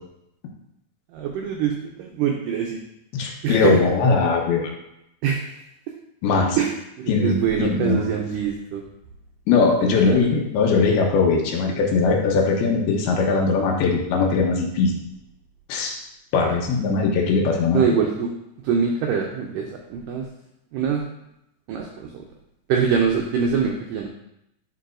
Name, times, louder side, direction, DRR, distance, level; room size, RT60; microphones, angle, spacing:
voice 1, 1.1-2.8 3.4-3.8 5.2-5.6 6.6-8.8 9.8-10.3 16.4-16.6 17.7-18.3 18.6-20.3 20.7-21.0 21.7-22.2 22.7-24.1, right 6 dB, 85° right, 1 dB, 1.9 m, -24 dB
voice 2, 3.1-4.7 6.2-6.6 7.1-8.1 9.5-15.0 15.7-15.9 16.3-18.0, left 4 dB, 80° left, 0 dB, 2.9 m, -20 dB
10.0 x 4.7 x 2.5 m, 0.82 s
omnidirectional pair, 4.5 m